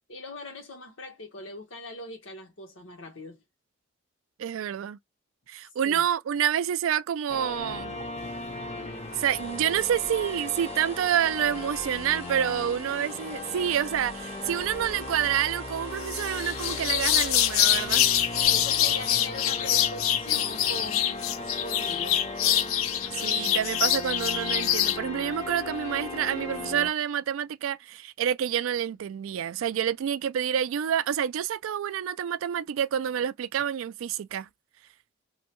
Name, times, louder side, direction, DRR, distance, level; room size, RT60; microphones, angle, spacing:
voice 1, 0.1-3.4 5.8-6.0 18.4-21.3 21.6-22.2, left 2 dB, 75° left, 1.2 m, -40 dB
voice 2, 4.4-5.0 5.5-8.0 9.2-18.1 23.1-34.5, right 9 dB, 80° right, 0.3 m, -28 dB
sound 1, 7.3-26.9, left 2 dB, 30° left, 0.6 m, -37 dB
sound 2, 9.1-18.5, right 4 dB, 30° right, 0.6 m, -47 dB
sound 3, 16.1-25.0, left 12 dB, 90° left, 0.4 m, -25 dB
2.7 x 2.2 x 2.9 m
head